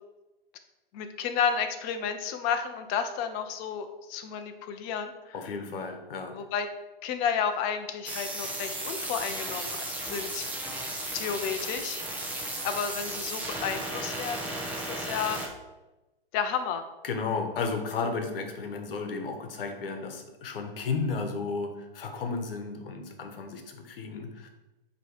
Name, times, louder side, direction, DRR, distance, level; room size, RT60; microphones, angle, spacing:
voice 1, 0.9-5.4 6.3-6.7 7.0-10.5 11.1-12.0 12.6-15.4 16.3-16.8, left 7 dB, 30° left, 7 dB, 0.7 m, -32 dB
voice 2, 5.3-6.4 17.0-24.5, left 4 dB, 70° left, 5 dB, 1.2 m, -33 dB
sound 1, 8.0-15.5, right 1 dB, 5° right, 0.9 m, -35 dB
7.6 x 3.1 x 4.8 m, 1.1 s
hypercardioid pair, 130°, 29 cm